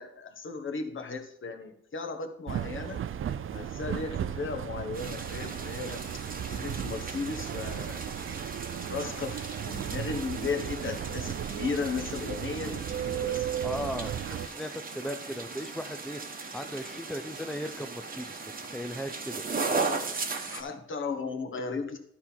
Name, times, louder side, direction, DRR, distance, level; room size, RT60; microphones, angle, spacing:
voice 1, 0.0-3.0 3.5-6.0 6.5-8.1 8.9-13.5 20.5-22.0, left 4 dB, 40° left, 6 dB, 1.3 m, -35 dB
sound 1, 2.5-14.5, right 10 dB, 45° right, 0.5 m, -35 dB
sound 2, 4.9-20.6, right 4 dB, 30° right, 1.2 m, -37 dB
voice 2, 13.6-19.4, equal, ahead, 7 dB, 0.5 m, -37 dB
11.5 x 4.3 x 5.8 m, 0.70 s
cardioid pair, 90°, 30 cm